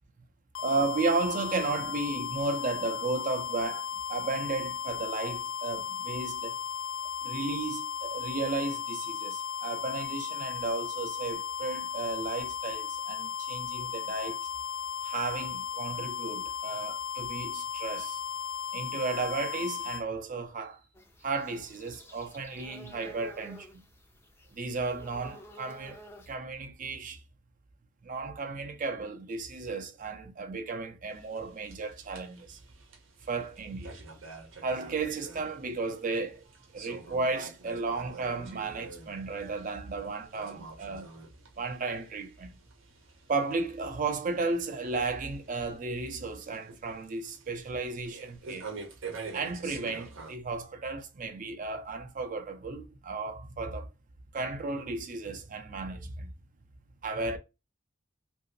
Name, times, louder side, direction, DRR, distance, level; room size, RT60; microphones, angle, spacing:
sound 1, 0.5-20.0, left 8 dB, 80° left, 0.4 m, -36 dB
voice 1, 0.6-6.6 7.2-14.4 15.0-18.2 18.7-20.8 21.2-23.8 24.5-26.0 26.3-27.2 28.0-32.6 33.3-34.0 34.6-36.5 36.7-41.1 41.6-42.6 43.3-48.7 49.3-53.9 54.3-56.3 57.0-57.4, right 3 dB, 45° right, 0.5 m, -34 dB
sound 2, 20.9-26.3, equal, 10° left, 0.4 m, -52 dB
sound 3, 31.1-50.4, right 4 dB, 75° right, 0.8 m, -48 dB
2.8 x 2.6 x 2.5 m
head